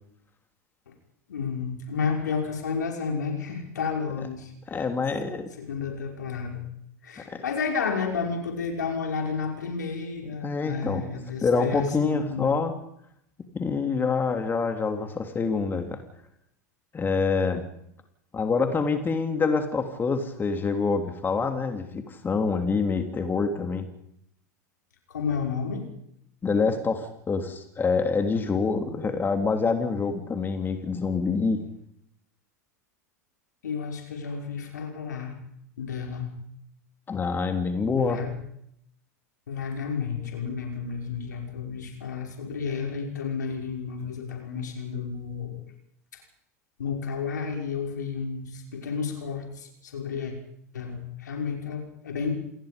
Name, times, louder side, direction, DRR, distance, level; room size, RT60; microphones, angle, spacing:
voice 1, 1.3-4.9 5.6-6.6 7.0-12.5 25.1-25.9 33.6-35.4 35.8-36.3 38.0-38.3 39.5-45.6 46.1-46.2 46.8-50.3 50.7-52.4, left 5 dB, 80° left, 2 dB, 5.9 m, -31 dB
voice 2, 4.7-5.5 7.3-7.4 10.4-11.0 11.4-12.7 13.5-16.0 16.9-17.6 18.3-23.9 26.4-31.6 37.1-38.2, left 4 dB, 20° left, 6 dB, 3.3 m, -26 dB
28.0 x 20.5 x 5.3 m, 0.72 s
hypercardioid pair, 90°, 9 cm